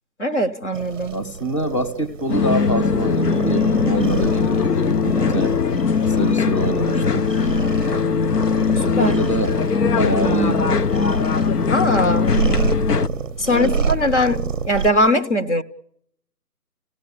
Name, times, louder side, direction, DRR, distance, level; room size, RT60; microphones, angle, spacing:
voice 1, 0.2-1.2 9.0-9.2 11.7-12.3 13.4-15.6, left 1 dB, 45° left, 8 dB, 1.1 m, -20 dB
sound 1, 0.7-14.9, right 6 dB, 5° right, 1.0 m, -29 dB
voice 2, 1.1-5.5 6.0-7.2 8.9-10.7 13.4-13.7, right 1 dB, 20° left, 6 dB, 1.0 m, -25 dB
sound 2, 2.3-13.1, left 5 dB, 70° left, 0.9 m, -20 dB
29.0 x 17.0 x 10.0 m, 0.73 s
hypercardioid pair, 170°, 49 cm